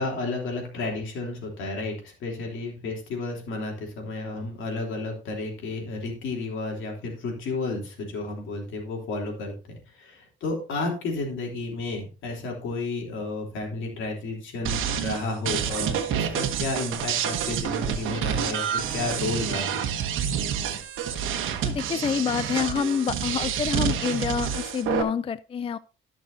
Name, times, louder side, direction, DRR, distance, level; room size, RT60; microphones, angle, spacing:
voice 1, 0.0-19.8, left 3 dB, 80° left, 1 dB, 3.3 m, -32 dB
sound 1, 14.6-25.0, right 8 dB, 85° right, 1.2 m, -28 dB
voice 2, 21.6-25.8, left 7 dB, 30° left, 16 dB, 0.4 m, -27 dB
14.5 x 6.1 x 2.7 m, 0.34 s
cardioid pair, 90°, 20 cm